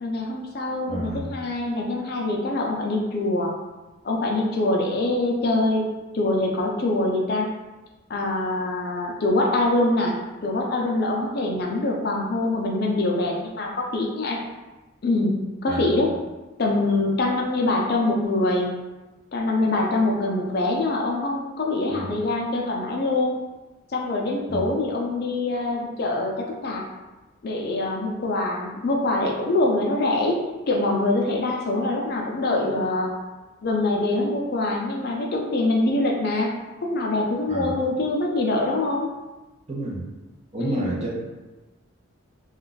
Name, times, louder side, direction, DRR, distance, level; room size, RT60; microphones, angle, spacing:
voice 1, 0.0-3.5 4.0-5.8 6.1-7.5 8.1-14.4 15.0-16.1 16.6-18.7 19.3-23.4 23.9-26.8 27.4-30.4 30.7-33.1 33.6-36.5 36.9-39.1 40.6-40.9, left 2 dB, 50° left, 0 dB, 0.4 m, -24 dB
voice 2, 0.9-1.3 15.7-16.0 21.9-22.2 24.5-24.7 37.5-37.8 39.7-40.1 40.5-41.1, right 1 dB, 30° right, -4 dB, 0.6 m, -30 dB
2.3 x 2.3 x 3.9 m, 1.1 s
head